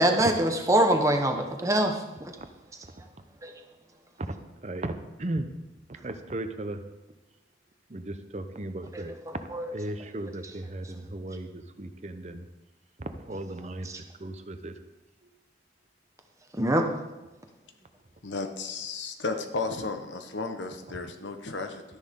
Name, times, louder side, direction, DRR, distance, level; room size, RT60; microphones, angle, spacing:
voice 1, 0.0-1.9 2.2-2.3 3.4-3.5 8.9-9.0 9.5-9.7 13.8-14.0 16.6-16.8, right 1 dB, 15° right, 4 dB, 1.0 m, -23 dB
voice 2, 4.6-4.9 5.2-5.5 6.0-6.8 7.9-9.2 9.7-12.5 13.0-13.9 14.2-14.7, right 1 dB, 40° right, 9 dB, 0.7 m, -36 dB
voice 3, 18.2-21.8, left 3 dB, 90° left, 6 dB, 1.1 m, -33 dB
12.5 x 10.5 x 3.7 m, 1.1 s
head